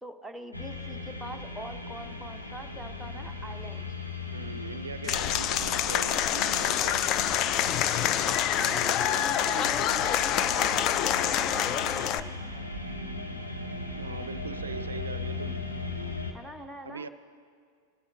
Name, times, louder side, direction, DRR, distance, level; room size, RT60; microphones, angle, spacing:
voice 1, 0.0-3.9 8.6-12.3 16.3-17.1, right 1 dB, 5° right, 4 dB, 0.7 m, -42 dB
sound 1, 0.5-16.3, left 3 dB, 85° left, 1.1 m, -38 dB
voice 2, 4.2-7.0 14.0-15.6 16.8-17.1, right 5 dB, 70° right, 12 dB, 0.4 m, -40 dB
Applause / Crowd, 5.0-12.2, left 10 dB, 35° left, 0.4 m, -26 dB
22.0 x 11.5 x 2.6 m, 2.2 s
figure-of-eight pair, 90°, 0 cm